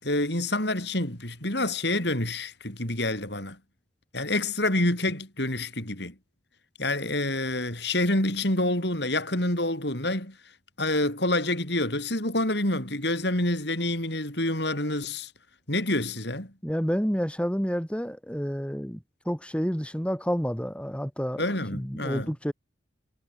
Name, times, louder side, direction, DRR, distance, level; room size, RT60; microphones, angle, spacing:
voice 1, 0.0-3.6 4.1-6.2 6.8-10.4 10.8-15.3 15.7-16.5 21.4-22.3, left 1 dB, 60° left, 6.8 m, -27 dB
voice 2, 16.6-22.5, equal, 5° left, 3.5 m, -29 dB
head